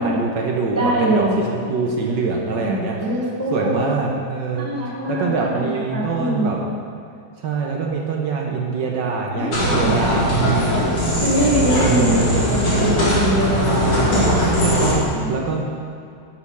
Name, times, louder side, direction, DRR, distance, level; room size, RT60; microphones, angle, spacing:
voice 1, 0.0-3.0 3.5-6.6 7.4-10.7 11.8-12.5 13.7-14.1 14.6-15.6, right 4 dB, 65° right, 0 dB, 1.4 m, -24 dB
voice 2, 0.7-1.5 2.6-4.2 4.5-5.3 5.5-5.7 5.9-6.5 9.3-9.9 10.4-10.9 11.2-13.9 15.1-15.3, right 1 dB, 10° left, -5 dB, 0.9 m, -23 dB
sound 1, 9.5-14.9, equal, 75° left, 3.2 m, -19 dB
8.2 x 6.5 x 5.5 m, 2.3 s
omnidirectional pair, 2.3 m